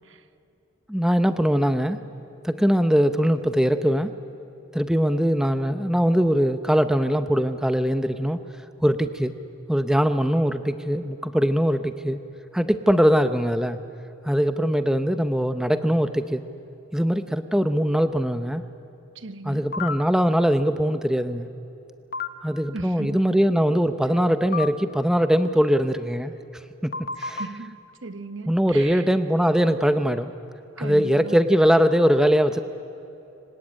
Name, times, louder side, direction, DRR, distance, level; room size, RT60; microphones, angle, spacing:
voice 1, 0.9-2.0 2.4-4.1 4.7-8.5 8.8-9.3 9.7-12.2 12.5-13.8 14.2-16.4 16.9-18.7 19.4-21.5 22.4-26.3 26.8-27.4 28.5-30.3 30.8-32.6, equal, 5° right, 10 dB, 0.7 m, -21 dB
voice 2, 19.1-19.7 22.7-23.2 27.2-29.1 30.8-31.4, right 3 dB, 65° right, 10 dB, 1.1 m, -37 dB
sound 1, 19.7-20.0 22.1-22.3 24.5-24.7 26.9-27.5, left 5 dB, 45° left, 0.9 m, -29 dB
25.5 x 18.0 x 8.9 m, 2.8 s
head